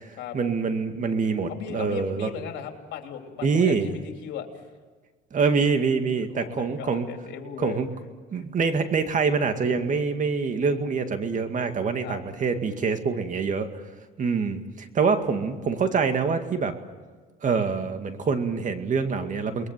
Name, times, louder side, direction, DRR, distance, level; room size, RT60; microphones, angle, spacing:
voice 1, 0.3-2.3 3.4-3.9 5.3-7.1 7.6-7.9 8.3-13.7 14.2-16.7 17.4-19.7, right 5 dB, 40° right, 7 dB, 2.2 m, -25 dB
voice 2, 1.5-4.5 6.3-7.8 8.3-8.4 12.0-12.2, left 8 dB, 70° left, 3 dB, 3.5 m, -37 dB
29.0 x 21.5 x 7.5 m, 1.4 s
cardioid pair, 105°, 19 cm